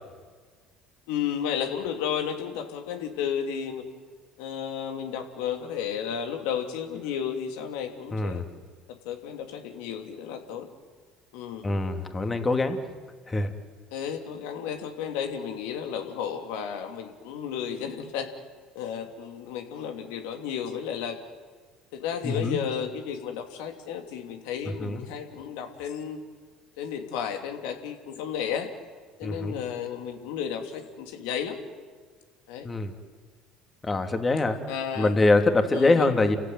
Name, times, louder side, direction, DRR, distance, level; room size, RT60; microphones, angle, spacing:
voice 1, 1.1-3.8 4.4-8.4 9.0-10.7 11.3-11.7 13.9-18.3 18.7-21.2 21.9-26.2 26.8-28.7 29.2-31.6 32.5-32.7 34.7-35.1 35.7-36.1, left 8 dB, 75° left, 5 dB, 2.9 m, -33 dB
voice 2, 8.1-8.4 11.6-12.8 13.3-13.5 22.2-22.6 24.8-25.0 29.2-29.6 32.6-32.9 33.8-34.6 35.0-36.4, left 2 dB, 25° left, 6 dB, 2.8 m, -24 dB
30.0 x 15.5 x 9.4 m, 1.5 s
hypercardioid pair, 70°, 0 cm